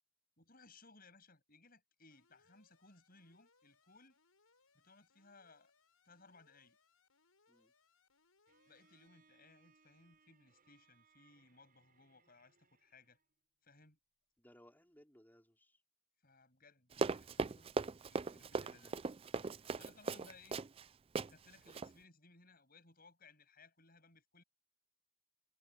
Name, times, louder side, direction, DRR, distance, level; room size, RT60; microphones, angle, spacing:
voice 1, 0.4-4.2 4.7-5.7 6.0-6.8 8.7-13.2 13.6-14.0 16.2-17.7 18.1-19.0 19.5-20.6 21.2-24.4, left 3 dB, 45° left, 7.8 m, -63 dB
Alarm, 2.1-9.1, left 4 dB, 85° left, 7.3 m, -75 dB
Bowed string instrument, 8.5-13.3, right 4 dB, 40° right, 8.0 m, -72 dB
voice 2, 14.4-15.8 18.2-18.5 19.5-19.8, equal, 10° left, 4.6 m, -65 dB
Run, 16.9-20.8 21.1-21.3 21.7-21.9, right 4 dB, 25° right, 0.4 m, -38 dB
head